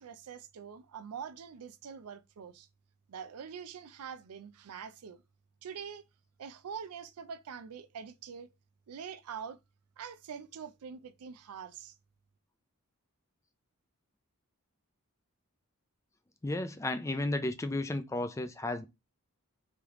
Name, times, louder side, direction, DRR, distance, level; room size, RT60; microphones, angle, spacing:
voice 1, 0.0-2.7 3.1-5.2 5.6-6.0 6.4-8.5 8.9-9.6 10.0-11.9, right 7 dB, 85° right, 0.4 m, -44 dB
voice 2, 16.4-18.9, left 2 dB, 15° left, 0.4 m, -33 dB
3.4 x 3.0 x 3.6 m
head